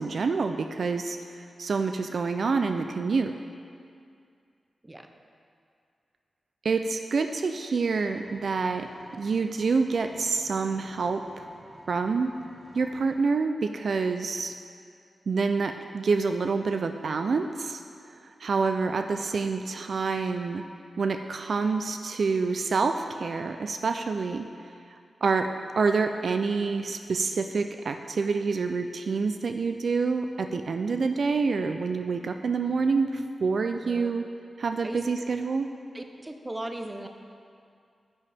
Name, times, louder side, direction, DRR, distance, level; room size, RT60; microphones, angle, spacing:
voice 1, 0.0-3.3 6.6-8.9 9.2-11.4 11.9-12.3 12.7-14.5 15.3-17.8 18.2-20.6 21.0-24.5 25.2-25.5 25.8-34.2 34.6-35.7, right 4 dB, 60° right, 6 dB, 0.3 m, -27 dB
Engine, 8.1-13.1, right 1 dB, 35° right, 1.2 m, -52 dB
voice 2, 35.9-37.1, right 1 dB, 15° right, 5 dB, 0.6 m, -37 dB
9.9 x 8.5 x 3.4 m, 2.3 s
wide cardioid pair, 115°, 0 cm